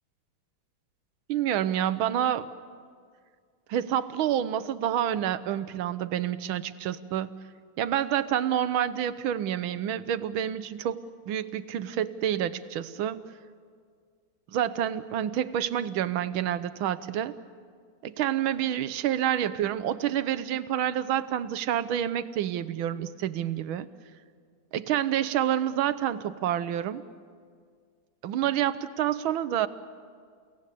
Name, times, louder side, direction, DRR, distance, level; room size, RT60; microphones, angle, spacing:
voice 1, 1.3-2.5 3.7-7.3 7.8-13.2 14.5-17.3 18.0-23.9 24.7-27.0 28.2-29.7, right 10 dB, 80° right, 14 dB, 1.6 m, -28 dB
30.0 x 17.5 x 8.4 m, 2.1 s
omnidirectional pair, 2.2 m